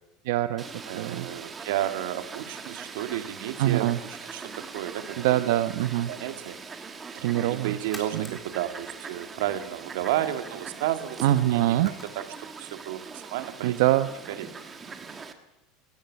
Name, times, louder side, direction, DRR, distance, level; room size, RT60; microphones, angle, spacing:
voice 1, 0.2-0.6 0.9-1.3 3.6-4.0 5.2-6.1 7.2-8.3 11.2-11.9 13.6-14.1, right 14 dB, 70° right, 10 dB, 0.9 m, -24 dB
Fowl, 0.6-15.3, right 5 dB, 15° right, 1.6 m, -42 dB
voice 2, 0.8-5.4 6.1-6.6 7.4-13.8 14.3-14.5, right 12 dB, 90° right, 9 dB, 2.2 m, -32 dB
sound 1, 5.0-5.5 6.1-6.5 6.9-7.0 7.5-9.6 10.0-10.2 10.5-12.6, left 1 dB, 5° left, 3.5 m, -49 dB
20.5 x 17.5 x 9.5 m, 0.93 s
cardioid pair, 180°, 0 cm